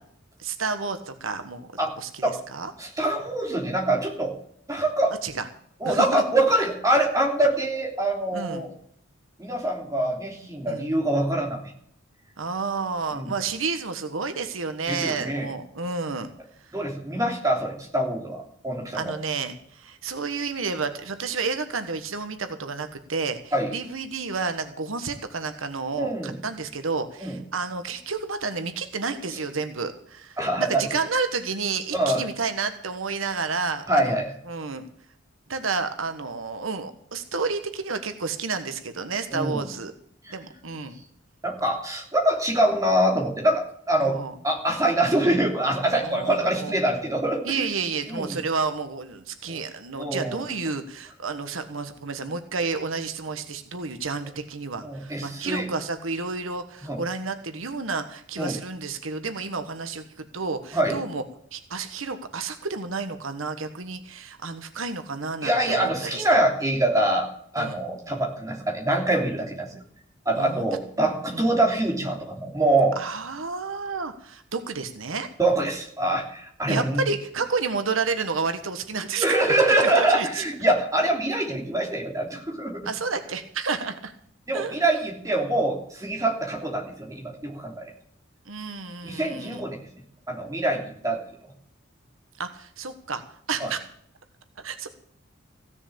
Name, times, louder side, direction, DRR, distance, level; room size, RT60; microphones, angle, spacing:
voice 1, 0.4-1.7 2.0-2.7 5.2-5.5 5.8-6.2 8.3-8.7 10.7-10.9 12.4-16.3 18.9-34.0 34.5-34.8 35.5-39.9 40.3-40.9 44.0-44.3 46.0-46.7 47.4-61.2 61.5-66.4 67.6-67.8 70.3-70.6 71.3-71.4 73.0-75.3 76.7-79.3 79.8-80.4 82.8-84.1 84.5-84.8 88.5-89.6 92.4-93.2 93.5-93.8 94.6-94.9, right 4 dB, 85° right, 9 dB, 1.3 m, -30 dB
voice 2, 2.8-4.3 4.7-5.1 5.8-8.7 9.4-11.6 13.1-13.3 14.9-15.5 16.7-19.1 23.5-23.7 26.0-26.3 27.2-27.4 30.4-30.8 31.9-32.2 33.9-34.3 39.3-39.7 40.2-40.3 41.4-47.7 48.1-48.4 49.5-49.6 50.0-50.4 54.8-55.7 56.8-57.0 58.4-58.6 60.7-61.0 65.4-67.3 67.5-69.7 70.2-73.0 75.4-77.0 79.2-82.9 84.5-87.9 89.0-89.9 90.3-91.2 93.6-93.7, right 1 dB, 15° right, 1 dB, 3.2 m, -24 dB
16.0 x 7.1 x 8.5 m, 0.66 s
head